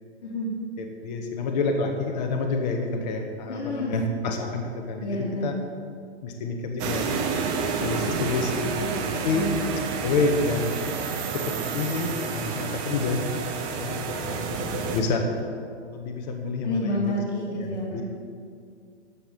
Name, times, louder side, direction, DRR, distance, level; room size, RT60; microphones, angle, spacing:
voice 1, 0.2-0.5 3.5-3.9 5.0-5.5 9.3-9.7 16.6-18.0, left 1 dB, 65° left, -7 dB, 2.9 m, -29 dB
voice 2, 0.8-5.6 6.2-7.5 7.8-9.5 10.0-10.7 11.3-13.3 13.6-15.4 15.9-17.1 17.6-18.0, left 3 dB, 35° left, 3 dB, 1.2 m, -28 dB
sound 1, 6.8-15.0, right 5 dB, 15° right, 0.5 m, -29 dB
14.0 x 4.9 x 7.4 m, 2.3 s
hypercardioid pair, 150°, 35 cm